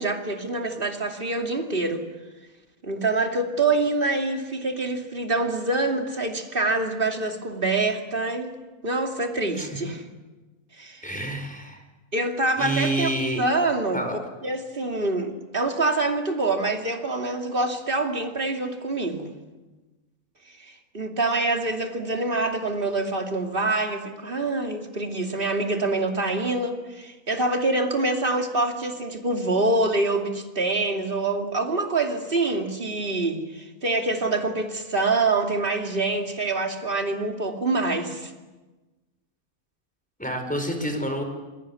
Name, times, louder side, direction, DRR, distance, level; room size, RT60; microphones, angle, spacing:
voice 1, 0.0-2.1 2.8-8.5 8.8-10.0 10.8-11.2 12.1-13.1 13.4-14.0 14.4-19.3 20.6-38.3, right 2 dB, 40° right, 3 dB, 2.9 m, -25 dB
voice 2, 11.0-11.8 12.6-13.4 13.9-14.1 40.2-41.2, right 1 dB, 5° left, 4 dB, 4.8 m, -28 dB
27.0 x 22.5 x 8.5 m, 1.2 s
omnidirectional pair, 1.5 m